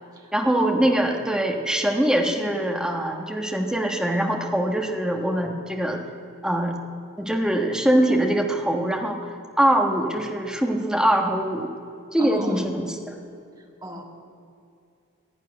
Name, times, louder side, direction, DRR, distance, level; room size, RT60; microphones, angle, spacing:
voice 1, 0.3-6.0 6.4-6.8 7.2-9.3 9.6-11.7 12.1-13.1, right 1 dB, 5° right, 1 dB, 1.3 m, -23 dB
voice 2, 12.2-12.6 13.8-14.0, equal, 20° right, 0 dB, 1.8 m, -34 dB
12.0 x 11.5 x 9.7 m, 2.4 s
head